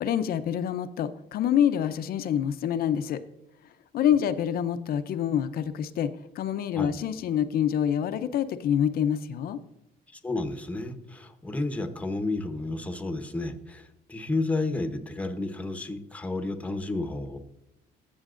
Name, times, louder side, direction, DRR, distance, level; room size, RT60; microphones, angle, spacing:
voice 1, 0.0-3.2 3.9-9.6, left 9 dB, 60° left, 11 dB, 0.6 m, -26 dB
voice 2, 10.1-17.4, left 2 dB, 10° left, 7 dB, 1.0 m, -31 dB
15.0 x 7.1 x 2.5 m, 0.89 s
cardioid pair, 110°, 17 cm